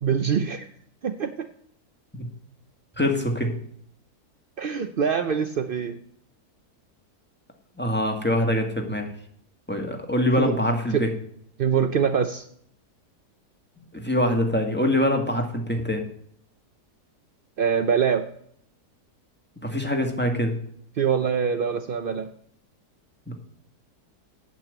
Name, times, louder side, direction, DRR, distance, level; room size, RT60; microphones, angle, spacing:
voice 1, 0.0-0.7 1.0-1.5 4.6-6.0 10.4-10.5 10.9-11.0 11.6-12.4 17.6-18.2 21.0-22.3, right 7 dB, 75° right, 9 dB, 0.5 m, -24 dB
voice 2, 3.0-3.5 7.8-9.1 9.7-11.1 13.9-16.0 19.6-20.5 23.3-23.4, left 1 dB, 5° left, 2 dB, 1.6 m, -24 dB
8.9 x 7.7 x 7.9 m, 0.65 s
omnidirectional pair, 1.8 m